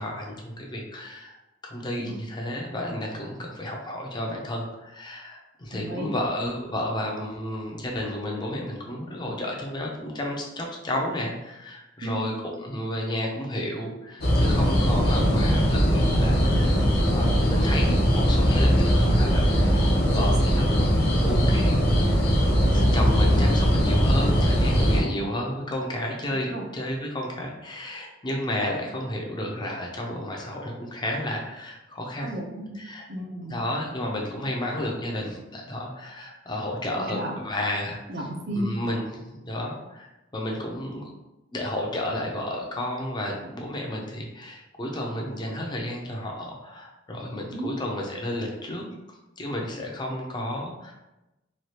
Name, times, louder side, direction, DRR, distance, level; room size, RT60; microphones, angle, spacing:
voice 1, 0.0-1.4 1.6-19.9 20.1-20.9 21.2-22.1 22.7-32.3 32.7-33.1 33.4-38.0 38.5-41.1 41.5-48.9 49.4-50.9, left 1 dB, 25° left, 0 dB, 0.5 m, -32 dB
voice 2, 5.7-6.1 12.0-12.2 20.2-20.5 26.5-26.7 32.2-32.8 33.1-33.6 36.9-37.4 38.1-38.7 47.5-47.8, right 1 dB, 65° right, -1 dB, 0.6 m, -33 dB
sound 1, 14.2-25.0, equal, 60° left, 0.7 m, -20 dB
3.1 x 2.3 x 2.8 m, 0.98 s
head